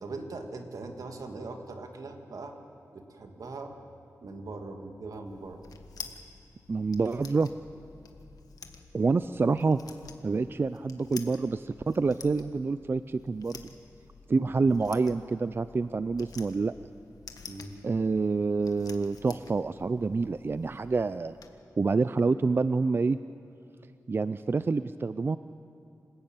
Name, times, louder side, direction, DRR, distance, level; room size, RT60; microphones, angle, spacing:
voice 1, 0.0-2.6 2.9-3.7 4.2-5.6 17.5-17.8, right 3 dB, 75° right, 4 dB, 2.2 m, -40 dB
sound 1, 5.3-21.5, left 5 dB, 90° left, 1.5 m, -50 dB
voice 2, 6.7-7.5 8.9-9.8 10.2-13.7 14.3-16.7 17.8-21.3 21.8-23.2 24.1-25.4, right 4 dB, 40° right, 13 dB, 0.4 m, -27 dB
27.5 x 15.0 x 9.0 m, 2.7 s
wide cardioid pair, 115°, 6 cm